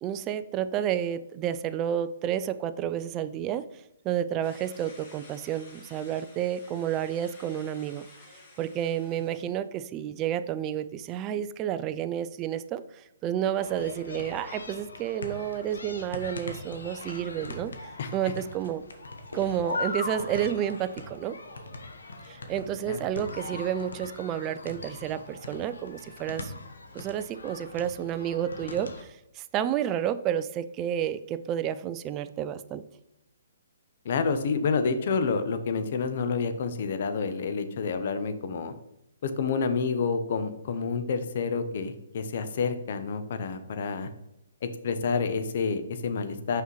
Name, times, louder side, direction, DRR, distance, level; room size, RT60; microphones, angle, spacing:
voice 1, 0.0-3.7 4.0-8.1 8.6-18.8 19.3-21.4 22.3-26.5 26.9-32.8, right 10 dB, 25° right, 12 dB, 0.3 m, -30 dB
sound 1, 4.4-9.6, left 2 dB, 35° left, 1.8 m, -53 dB
sound 2, 13.6-29.0, left 3 dB, 85° left, 1.0 m, -40 dB
voice 2, 34.0-38.7 39.2-44.1 44.6-46.6, left 5 dB, 55° left, 10 dB, 0.7 m, -29 dB
5.8 x 5.5 x 3.1 m, 0.85 s
hypercardioid pair, 145°, 0 cm